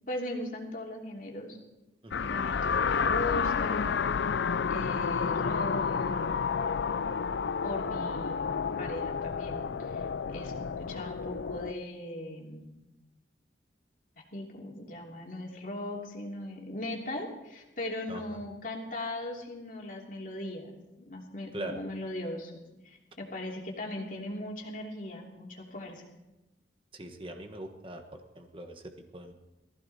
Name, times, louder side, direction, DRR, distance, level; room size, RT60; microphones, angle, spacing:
voice 1, 0.1-1.6 2.2-4.3 4.6-6.2 7.6-12.6 14.3-20.7 21.0-26.0, left 1 dB, 50° left, -1 dB, 3.0 m, -39 dB
sound 1, 2.1-11.7, left 6 dB, 90° left, 0.5 m, -30 dB
voice 2, 18.1-18.4 21.5-21.8 26.9-29.3, right 1 dB, 30° right, 5 dB, 1.3 m, -42 dB
18.5 x 15.0 x 4.3 m, 0.98 s
head